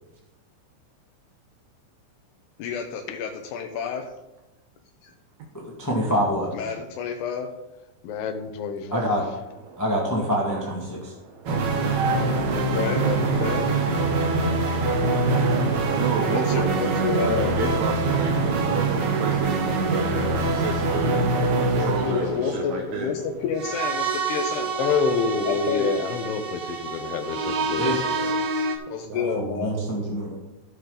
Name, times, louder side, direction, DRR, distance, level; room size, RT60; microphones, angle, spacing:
voice 1, 2.6-4.1 5.0-5.1 6.5-7.5 12.5-13.0 13.4-13.6 16.3-17.7 22.1-24.8 25.5-26.0 28.9-29.7, left 6 dB, 80° left, 1 dB, 2.3 m, -29 dB
voice 2, 5.5-6.5 8.9-9.2 9.8-11.1 27.8-28.3 29.3-30.3, equal, 10° left, -3 dB, 1.1 m, -26 dB
voice 3, 8.0-9.2 12.9-13.7 21.4-22.9 24.8-27.8 28.1-28.5, left 5 dB, 65° left, 6 dB, 1.7 m, -29 dB
voice 4, 10.5-12.2 15.8-23.1 29.1-30.4, right 5 dB, 75° right, 3 dB, 2.1 m, -32 dB
sound 1, 11.5-28.8, right 3 dB, 55° right, 1.3 m, -25 dB
15.5 x 6.5 x 3.9 m, 0.99 s
omnidirectional pair, 3.5 m